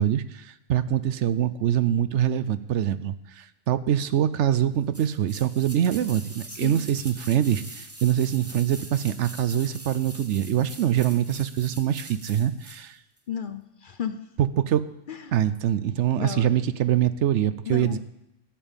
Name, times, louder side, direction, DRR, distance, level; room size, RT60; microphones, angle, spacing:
voice 1, 0.0-13.0 14.4-14.9 15.3-18.0, right 10 dB, 75° right, 14 dB, 0.9 m, -24 dB
sound 1, 4.9-12.9 13.2-13.3, right 1 dB, 15° right, 0.9 m, -43 dB
voice 2, 6.5-6.8 13.3-14.2 15.1-15.4 16.2-16.5 17.6-18.0, left 8 dB, 55° left, 10 dB, 0.7 m, -33 dB
13.0 x 5.4 x 8.9 m, 0.84 s
omnidirectional pair, 1.3 m